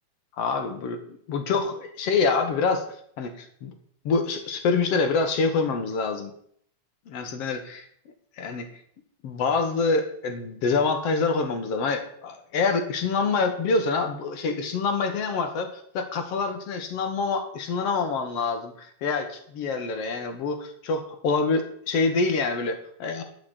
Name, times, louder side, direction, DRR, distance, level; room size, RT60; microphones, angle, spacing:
voice 1, 0.4-3.7 4.1-6.3 7.1-7.8 8.4-8.7 9.2-23.2, left 4 dB, 60° left, 7 dB, 2.2 m, -26 dB
11.5 x 5.9 x 8.4 m, 0.66 s
omnidirectional pair, 3.3 m